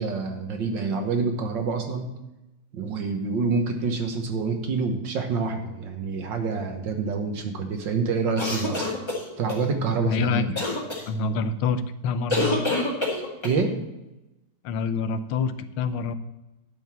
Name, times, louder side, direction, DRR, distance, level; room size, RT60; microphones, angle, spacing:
voice 1, 0.0-2.1 2.7-8.9 9.4-10.5 13.4-13.8, right 4 dB, 65° right, 5 dB, 1.9 m, -27 dB
sound 1, 8.4-9.6 10.6-11.0 12.3-13.6, left 2 dB, 15° left, 1.8 m, -26 dB
voice 2, 10.1-10.5 11.1-12.7 14.6-16.2, left 5 dB, 85° left, 12 dB, 1.6 m, -26 dB
11.0 x 5.3 x 7.5 m, 0.97 s
omnidirectional pair, 2.3 m